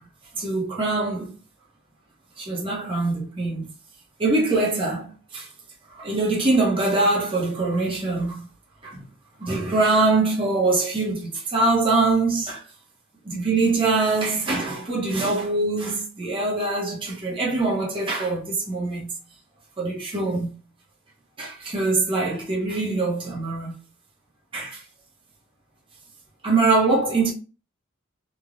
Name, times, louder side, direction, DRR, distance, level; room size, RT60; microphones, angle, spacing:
voice 1, 0.3-1.3 2.4-3.7 4.2-5.5 5.9-8.4 8.8-9.0 9.4-12.6 13.2-19.1 19.8-20.5 21.4-23.7 24.5-24.8 26.4-27.3, right 3 dB, 25° right, 0.8 m, -23 dB
3.1 x 2.2 x 2.4 m
head